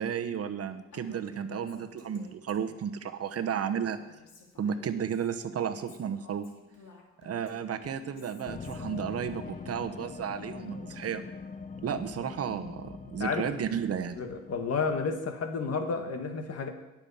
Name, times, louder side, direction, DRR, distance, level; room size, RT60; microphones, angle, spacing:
voice 1, 0.0-4.0 4.6-6.5 7.2-11.2 11.8-14.2, right 8 dB, 50° right, 8 dB, 1.0 m, -33 dB
Female speech woman speaking, 0.9-2.9 3.3-5.3 5.7-9.9, left 4 dB, 80° left, 2.6 m, -53 dB
sound 1, 8.5-15.2, left 5 dB, 25° left, 0.7 m, -43 dB
voice 2, 14.2-16.7, left 5 dB, 55° left, 6 dB, 1.9 m, -31 dB
17.5 x 7.0 x 5.6 m, 1.0 s
cardioid pair, 90°, 30 cm